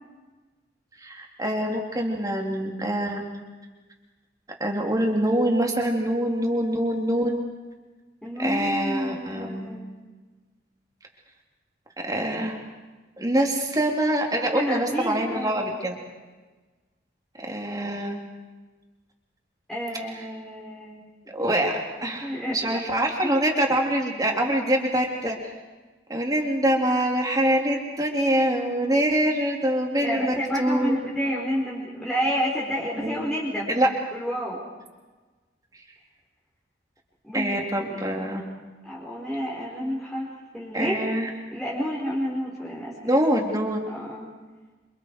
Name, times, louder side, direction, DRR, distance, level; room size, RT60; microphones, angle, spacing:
voice 1, 1.0-3.2 4.6-7.4 8.4-9.8 12.0-12.6 13.2-15.9 17.5-18.2 21.3-25.4 26.1-31.0 33.0-33.3 33.7-33.9 37.3-38.4 40.7-41.3 43.0-43.8, right 1 dB, 20° right, 1 dB, 3.6 m, -25 dB
voice 2, 8.2-9.8 14.5-15.6 19.7-21.1 22.2-22.8 23.2-23.4 30.0-33.7 34.1-34.6 37.2-38.1 38.8-40.3 40.5-41.0 41.5-43.2 43.9-44.3, equal, ahead, -7 dB, 4.7 m, -30 dB
29.5 x 27.5 x 4.9 m, 1.3 s
head